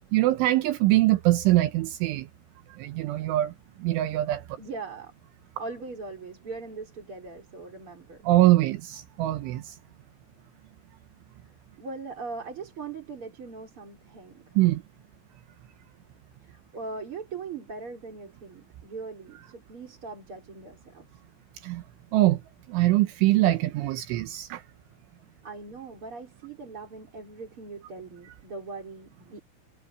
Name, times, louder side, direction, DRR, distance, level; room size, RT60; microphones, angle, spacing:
voice 1, 0.1-2.3 2.7-3.5 3.8-4.4 8.2-9.7 14.6-14.8 21.6-21.8 22.1-22.4 22.7-24.6, right 16 dB, 80° right, 3.3 m, -23 dB
voice 2, 4.6-5.1 5.6-8.3 11.8-14.6 16.4-21.2 25.4-29.4, right 4 dB, 30° right, 4.7 m, -40 dB
omnidirectional pair, 5.7 m